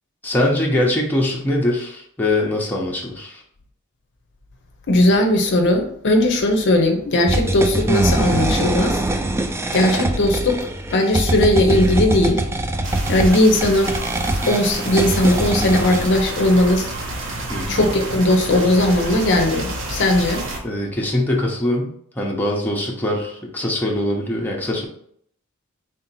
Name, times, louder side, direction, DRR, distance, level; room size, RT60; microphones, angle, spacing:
voice 1, 0.2-3.4 17.5-17.8 20.6-24.8, left 1 dB, 10° left, -2 dB, 0.7 m, -22 dB
voice 2, 4.9-9.0 9.7-12.4 13.1-14.0 14.5-16.9 17.7-20.4, left 1 dB, 55° left, 3 dB, 0.6 m, -18 dB
sound 1, 7.3-16.1, right 1 dB, 10° right, 0.3 m, -22 dB
sound 2, 12.8-20.6, right 2 dB, 60° right, 0.9 m, -29 dB
3.7 x 2.8 x 4.1 m, 0.66 s
head